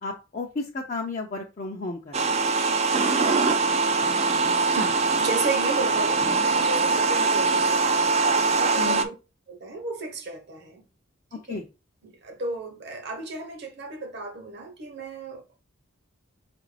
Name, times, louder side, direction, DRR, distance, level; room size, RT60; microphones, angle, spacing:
voice 1, 0.0-2.3 8.7-9.1 11.5-11.7, left 3 dB, 35° left, 0.5 m, -33 dB
sound 1, 2.1-9.0, right 4 dB, 30° right, 0.3 m, -22 dB
voice 2, 4.7-9.1 9.5-10.8 11.3-11.6 12.0-15.6, right 3 dB, 50° right, 0.9 m, -34 dB
5.5 x 2.5 x 3.2 m
head